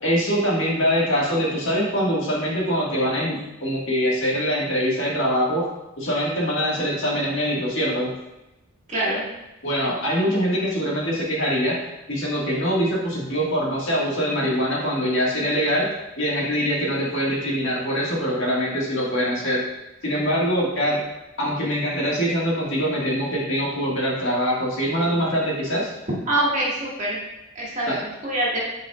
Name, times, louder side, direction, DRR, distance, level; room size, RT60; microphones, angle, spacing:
voice 1, 0.0-5.6 6.0-8.1 9.6-11.8 12.1-15.9 16.2-19.6 20.0-21.0 21.4-25.9 27.9-28.0, equal, 60° left, -5 dB, 1.8 m, -23 dB
voice 2, 8.9-9.2 26.3-27.2 27.6-28.6, right 1 dB, 35° right, -6 dB, 1.9 m, -24 dB
8.0 x 5.0 x 2.4 m, 0.96 s
head